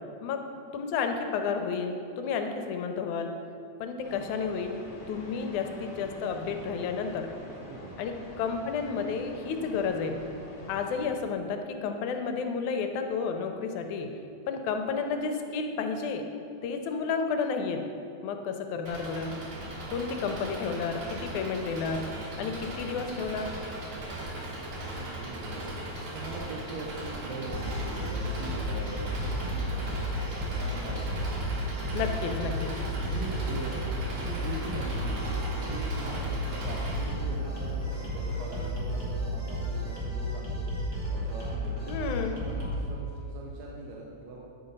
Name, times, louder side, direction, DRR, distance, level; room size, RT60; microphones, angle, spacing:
voice 1, 0.7-3.3 3.8-4.8 5.1-7.3 8.0-10.2 10.7-14.1 14.5-16.2 16.6-17.8 18.2-19.3 19.9-22.1 22.4-23.5 31.9-32.9 41.9-42.3, left 5 dB, 85° left, 5 dB, 2.0 m, -31 dB
sound 1, 4.0-11.1, left 1 dB, 55° left, 1.7 m, -46 dB
voice 2, 6.5-6.9 7.5-8.1 24.9-31.3 33.0-33.8 34.1-35.4 35.7-40.7 41.1-44.4, right 2 dB, 75° right, -2 dB, 1.9 m, -42 dB
Engine, 18.9-37.0, right 1 dB, 55° right, 1.6 m, -38 dB
sound 2, 27.5-42.8, equal, 15° right, 0.9 m, -33 dB
9.4 x 3.9 x 5.2 m, 2.7 s
omnidirectional pair, 3.4 m